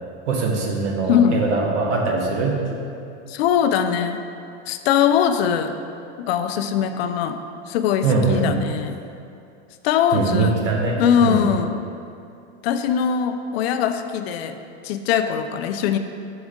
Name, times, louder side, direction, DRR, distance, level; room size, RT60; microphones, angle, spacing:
voice 1, 0.3-2.6 8.0-8.5 10.1-11.4, right 3 dB, 85° right, 0 dB, 1.2 m, -22 dB
voice 2, 1.1-1.4 3.3-4.2 4.7-5.8 6.2-9.0 9.8-10.6 11.0-11.8 12.6-14.6 14.8-16.0, left 8 dB, 60° left, 8 dB, 0.5 m, -21 dB
6.2 x 4.8 x 3.7 m, 2.5 s
supercardioid pair, 150°, 35 cm